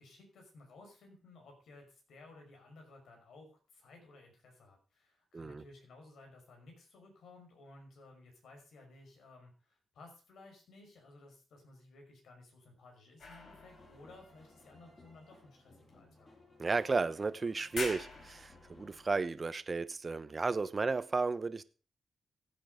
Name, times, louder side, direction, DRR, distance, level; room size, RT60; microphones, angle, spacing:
voice 1, 0.0-16.3, left 2 dB, 85° left, 2 dB, 5.6 m, -57 dB
voice 2, 5.3-5.6 16.6-21.6, right 4 dB, 35° right, 14 dB, 0.9 m, -33 dB
sound 1, 13.2-15.1 15.9-16.0 16.7-17.3 17.6-19.2, left 3 dB, 65° left, 4.4 m, -46 dB
sound 2, 13.3-19.2, left 1 dB, 35° left, 6.6 m, -61 dB
15.5 x 8.9 x 5.0 m, 0.36 s
cardioid pair, 90°, 0 cm